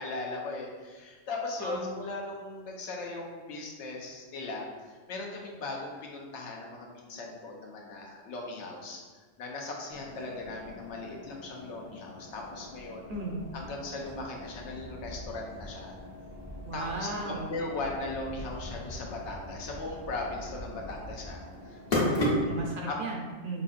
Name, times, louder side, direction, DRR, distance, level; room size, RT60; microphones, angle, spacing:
voice 1, 0.0-9.0 9.4-13.1 13.5-15.9 16.7-21.4 21.6-22.5 22.9-23.0, left 2 dB, 75° left, -1 dB, 1.0 m, -38 dB
voice 2, 1.6-1.9 13.1-13.4 16.6-17.5 22.3-23.6, right 2 dB, 55° right, -2 dB, 0.7 m, -36 dB
sound 1, 9.9-22.8, left 1 dB, 55° left, 1.2 m, -37 dB
5.2 x 2.6 x 2.4 m, 1.4 s
omnidirectional pair, 1.2 m